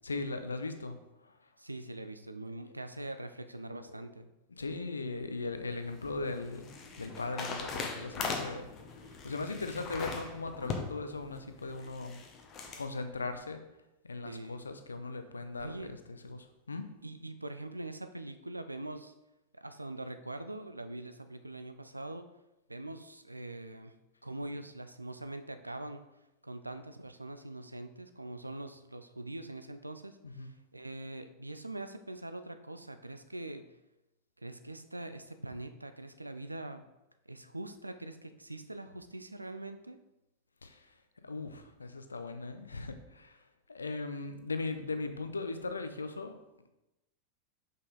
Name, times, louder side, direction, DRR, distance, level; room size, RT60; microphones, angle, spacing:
voice 1, 0.0-1.0 1.2-1.4 4.6-8.7 9.2-12.2 12.8-13.6 14.0-16.9 30.2-30.5 40.6-40.9 41.2-43.4 43.7-46.4, left 3 dB, 75° left, 8 dB, 0.6 m, -38 dB
voice 2, 1.6-4.3 14.2-14.6 15.6-15.9 17.0-19.1 19.5-22.3 22.7-23.9 24.2-26.1 26.4-33.7 34.4-36.8 37.3-40.0, right 2 dB, 85° right, 9 dB, 0.4 m, -43 dB
sound 1, 5.5-12.8, left 4 dB, 30° left, 1.0 m, -41 dB
5.5 x 5.3 x 3.9 m, 0.94 s
figure-of-eight pair, 90°, 0 cm